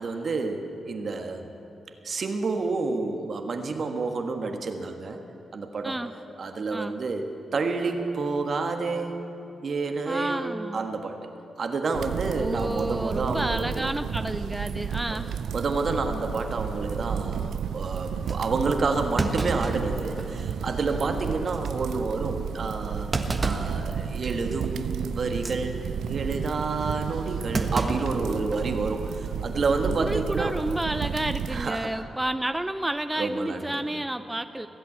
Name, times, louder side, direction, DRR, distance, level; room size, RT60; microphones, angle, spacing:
voice 1, 0.0-1.5 2.0-5.2 5.5-6.0 6.4-7.2 7.5-9.2 9.6-11.3 11.6-13.9 15.1-15.2 15.5-23.1 23.4-25.7 26.1-30.6 31.5-31.9 33.2-33.8, right 3 dB, 60° right, 5 dB, 1.5 m, -29 dB
voice 2, 10.1-10.9 12.4-15.3 20.9-21.1 29.8-34.7, right 1 dB, 15° right, 10 dB, 0.6 m, -30 dB
sound 1, 11.9-31.7, right 7 dB, 80° right, 0.5 m, -32 dB
Thump thud, 18.3-18.4 19.2-20.5 20.9-21.0 21.5-21.7 23.1-23.8 24.2-24.5 25.3-25.6 27.5-28.7 29.1-29.2 30.3-30.6, right 2 dB, 35° right, 1.3 m, -30 dB
20.0 x 8.4 x 8.4 m, 2.9 s
supercardioid pair, 50°, 0 cm